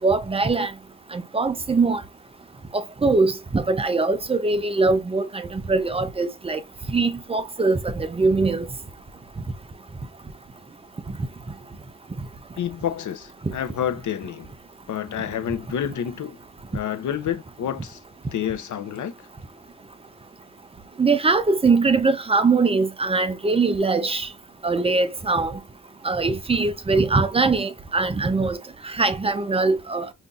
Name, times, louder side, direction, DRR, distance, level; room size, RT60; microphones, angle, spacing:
voice 1, 0.0-0.7 1.1-2.0 2.7-6.6 6.9-8.7 21.0-24.3 24.6-25.6 26.0-28.6 28.8-30.1, right 3 dB, 15° right, 0.4 m, -22 dB
voice 2, 12.6-14.5 14.9-16.4 16.7-18.0 18.3-19.1, left 9 dB, 55° left, 0.6 m, -29 dB
5.2 x 2.6 x 2.3 m
wide cardioid pair, 135°, 35 cm